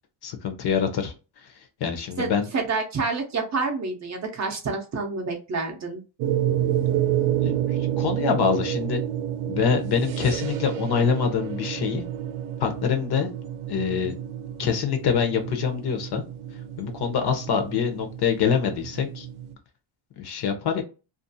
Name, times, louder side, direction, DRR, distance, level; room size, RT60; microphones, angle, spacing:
voice 1, 0.2-1.1 1.4-1.5 1.8-2.5 7.4-9.0 9.5-12.1 12.6-13.3 13.7-14.1 14.6-16.2 16.8-19.3 20.2-20.8, left 7 dB, 55° left, 6 dB, 0.7 m, -25 dB
voice 2, 2.2-6.0, right 4 dB, 35° right, 2 dB, 0.5 m, -28 dB
sound 1, 6.2-19.5, right 11 dB, 85° right, 0.6 m, -29 dB
2.5 x 2.3 x 2.6 m, 0.31 s
cardioid pair, 170°, 49 cm